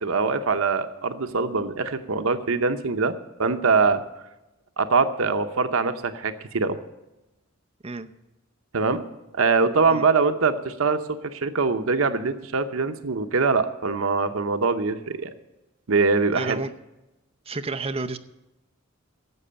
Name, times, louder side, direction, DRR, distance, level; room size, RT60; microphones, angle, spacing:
voice 1, 0.0-3.1 3.4-4.0 4.8-6.8 8.7-9.0 9.3-15.3 15.9-16.6, right 4 dB, 85° right, 9 dB, 0.8 m, -23 dB
voice 2, 16.3-16.7 17.5-18.2, right 3 dB, 30° right, 7 dB, 0.6 m, -30 dB
12.0 x 7.7 x 8.6 m, 0.99 s
head